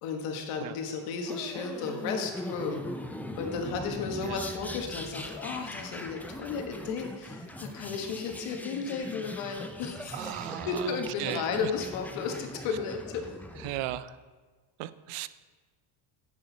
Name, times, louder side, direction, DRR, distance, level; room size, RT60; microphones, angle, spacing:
voice 1, 0.0-2.9 3.4-13.3, left 5 dB, 85° left, 3 dB, 1.6 m, -34 dB
sound 1, 1.3-14.0, left 1 dB, 5° left, 0.5 m, -40 dB
voice 2, 10.1-11.7 13.6-14.2 14.8-15.3, right 14 dB, 90° right, 15 dB, 0.6 m, -36 dB
10.5 x 8.2 x 4.1 m, 1.4 s
cardioid pair, 115°, 49 cm